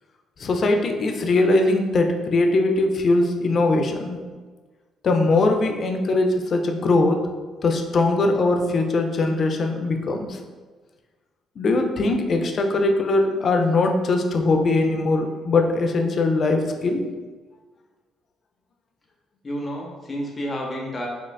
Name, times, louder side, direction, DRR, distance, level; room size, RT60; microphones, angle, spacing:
voice 1, 0.4-4.2 5.0-7.2 7.6-10.4 11.6-17.0, left 2 dB, 50° left, 4 dB, 0.5 m, -21 dB
voice 2, 19.4-21.1, equal, 30° left, -2 dB, 0.8 m, -31 dB
5.3 x 2.4 x 2.3 m, 1.4 s
hypercardioid pair, 55°, 0 cm